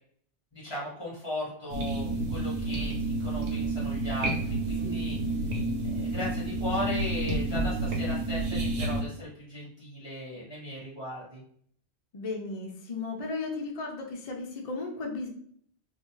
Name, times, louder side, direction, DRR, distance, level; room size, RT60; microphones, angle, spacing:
voice 1, 0.5-5.2 5.8-11.4, left 1 dB, 25° left, -6 dB, 1.4 m, -37 dB
sound 1, 1.7-9.0, right 2 dB, 80° right, 1.0 m, -30 dB
voice 2, 12.1-15.3, left 3 dB, 45° left, 1 dB, 0.5 m, -35 dB
2.5 x 2.4 x 3.0 m, 0.62 s
omnidirectional pair, 1.1 m